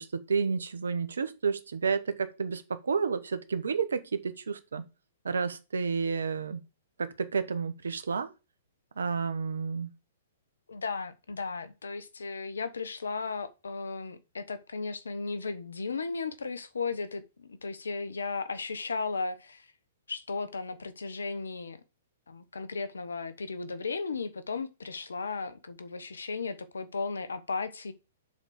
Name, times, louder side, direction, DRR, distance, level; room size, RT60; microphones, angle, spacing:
voice 1, 0.0-4.8 5.2-6.6 7.0-8.3 9.0-9.9, right 5 dB, 80° right, 1.1 m, -31 dB
voice 2, 10.7-19.7 20.1-21.8 22.3-27.9, left 4 dB, 80° left, 1.1 m, -35 dB
7.1 x 4.1 x 6.4 m
hypercardioid pair, 120°, 0 cm